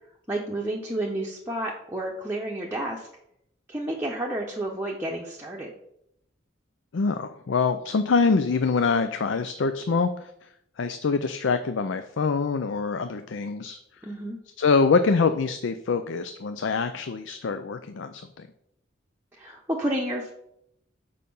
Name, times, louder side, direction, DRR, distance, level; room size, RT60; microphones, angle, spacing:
voice 1, 0.3-3.1 3.7-5.7 14.0-14.4 19.4-20.3, right 1 dB, 10° right, -1 dB, 0.8 m, -30 dB
voice 2, 6.9-10.3 10.8-13.8 14.6-18.5, left 4 dB, 70° left, 9 dB, 0.5 m, -25 dB
6.6 x 5.2 x 5.4 m, 0.75 s
head